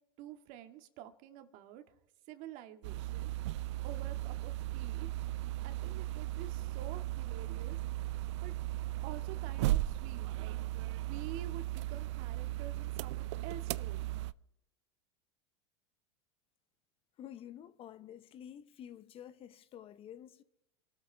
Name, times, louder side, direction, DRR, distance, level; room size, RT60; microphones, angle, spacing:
voice 1, 0.2-1.8 2.3-3.3 3.8-5.2 5.6-7.8 8.4-8.6 9.0-10.6 11.0-14.2, right 11 dB, 55° right, 1.8 m, -49 dB
sound 1, 2.8-14.3, right 16 dB, 70° right, 0.5 m, -36 dB
voice 2, 17.2-20.4, left 10 dB, 35° left, 0.8 m, -50 dB
28.0 x 13.0 x 3.5 m
hypercardioid pair, 105°, 16 cm